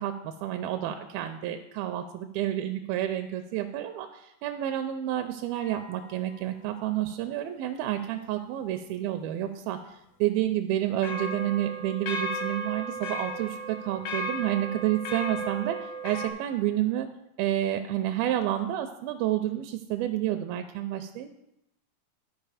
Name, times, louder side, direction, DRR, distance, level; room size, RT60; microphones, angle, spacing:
voice 1, 0.0-9.8 10.2-17.1 17.4-21.3, right 12 dB, 85° right, 7 dB, 2.1 m, -29 dB
sound 1, 5.6-6.2 11.0-16.3, right 1 dB, 85° left, 1.5 m, -35 dB
12.5 x 4.7 x 4.8 m, 0.84 s
omnidirectional pair, 4.7 m